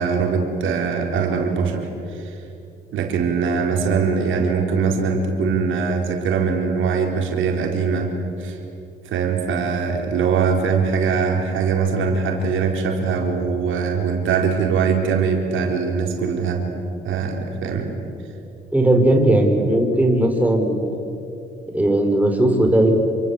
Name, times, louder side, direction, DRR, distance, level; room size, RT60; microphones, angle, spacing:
voice 1, 0.0-2.4 2.9-8.1 8.4-8.6 9.0-16.6 17.0-17.9, right 5 dB, 80° right, 1 dB, 4.4 m, -22 dB
voice 2, 18.7-21.0 21.7-22.9, right 1 dB, 5° right, 2 dB, 4.9 m, -17 dB
28.0 x 25.0 x 8.4 m, 2.7 s
cardioid pair, 90°, 20 cm